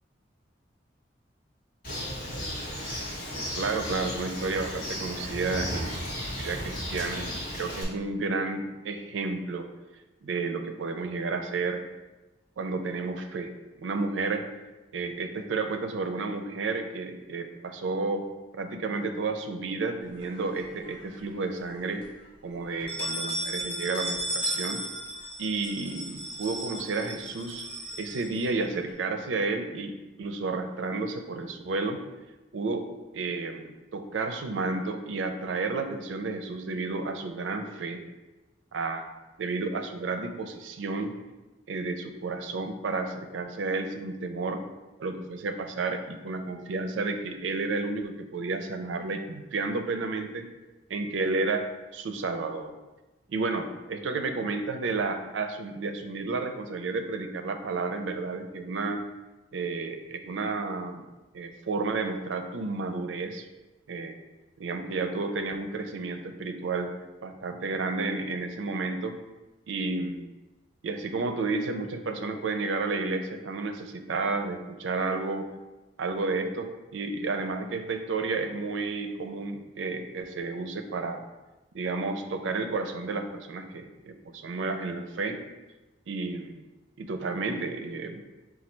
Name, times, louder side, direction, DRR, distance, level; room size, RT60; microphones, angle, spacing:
Bird, 1.8-7.8, equal, 50° left, 1.2 m, -35 dB
voice 1, 3.5-6.0 6.4-9.7 10.2-11.8 12.6-13.5 13.8-14.5 14.9-18.3 18.5-22.1 22.4-24.8 25.4-27.7 28.0-32.0 32.5-32.9 33.1-38.0 38.7-39.1 39.4-41.1 41.7-44.6 45.0-50.5 50.9-52.7 53.3-59.1 59.5-61.0 61.3-63.5 63.9-64.2 64.6-66.9 67.2-69.2 69.7-70.3 70.8-75.5 76.0-81.2 81.7-85.4 86.1-86.6 87.0-88.2, right 3 dB, 85° right, 6 dB, 0.4 m, -31 dB
sound 1, 20.2-21.1 21.5-21.6 22.0-22.1 22.7-28.9, right 1 dB, 30° left, 0.8 m, -35 dB
4.3 x 2.3 x 4.3 m, 1.1 s
head